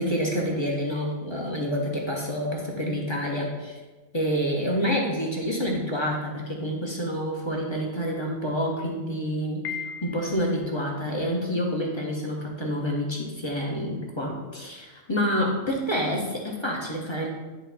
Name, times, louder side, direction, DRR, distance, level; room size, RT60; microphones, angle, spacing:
voice 1, 0.0-3.8 4.1-9.7 10.0-17.3, equal, 20° left, -2 dB, 1.1 m, -28 dB
Piano, 9.6-10.7, left 8 dB, 70° left, 0.9 m, -36 dB
10.0 x 3.6 x 4.1 m, 1.2 s
omnidirectional pair, 1.4 m